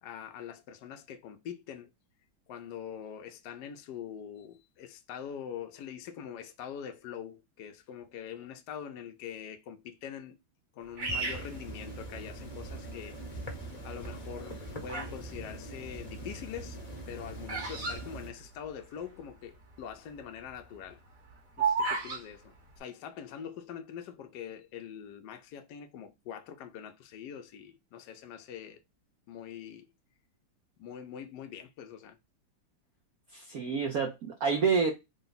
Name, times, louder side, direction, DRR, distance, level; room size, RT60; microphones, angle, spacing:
voice 1, 0.0-1.9 2.5-10.4 10.7-13.2 13.8-16.8 17.1-21.0 21.6-28.8 29.3-29.9 30.8-32.2, left 8 dB, 70° left, 1.0 m, -44 dB
sound 1, 11.0-18.3, right 2 dB, 30° left, 0.8 m, -42 dB
Bird vocalization bird call bird song, 11.0-12.5 13.1-13.6 14.3-15.2 15.5-19.0 19.3-19.4 19.5-19.9 20.3-22.2, right 4 dB, 45° right, 1.5 m, -34 dB
voice 2, 33.3-34.9, right 5 dB, 65° right, 1.0 m, -28 dB
3.8 x 2.2 x 3.9 m
omnidirectional pair, 2.2 m